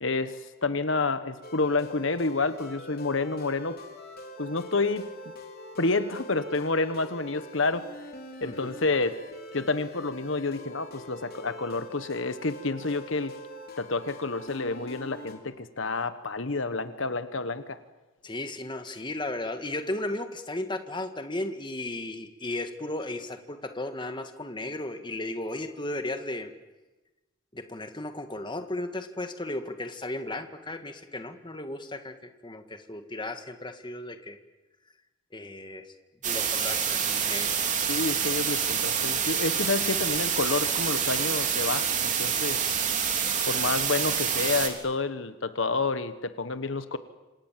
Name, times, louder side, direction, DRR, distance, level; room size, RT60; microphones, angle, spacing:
voice 1, 0.0-3.8 4.4-5.1 5.8-7.9 8.4-9.2 9.5-13.3 13.8-17.8 37.9-42.6 43.5-47.0, left 3 dB, 70° left, 11 dB, 1.4 m, -29 dB
sound 1, 1.4-15.3, left 1 dB, 50° left, 4.2 m, -44 dB
voice 2, 18.2-26.5 27.5-32.1 32.4-34.4 35.3-35.9 36.2-37.6, left 2 dB, 25° left, 7 dB, 1.9 m, -35 dB
sound 2, 36.2-44.7, right 7 dB, 40° right, 3.4 m, -27 dB
27.0 x 27.0 x 7.6 m, 1.1 s
head